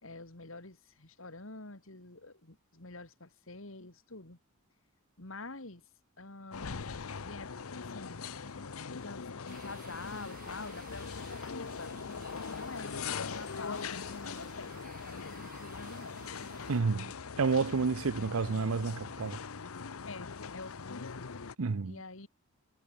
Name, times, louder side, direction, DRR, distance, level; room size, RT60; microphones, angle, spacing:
voice 1, 0.0-4.4 5.2-5.8 6.2-6.8 7.2-8.3 8.9-11.9 12.4-14.0 14.2-14.8 15.1-16.4 20.1-21.4 21.9-22.3, left 3 dB, 65° left, 2.9 m, -47 dB
sound 1, 6.5-21.5, left 5 dB, 85° left, 0.8 m, -41 dB
sound 2, 7.2-14.6, left 1 dB, 25° left, 2.9 m, -59 dB
sound 3, 9.5-16.8, right 6 dB, 40° right, 3.6 m, -55 dB
voice 2, 16.7-19.4 21.6-22.0, right 4 dB, 85° right, 0.7 m, -30 dB
head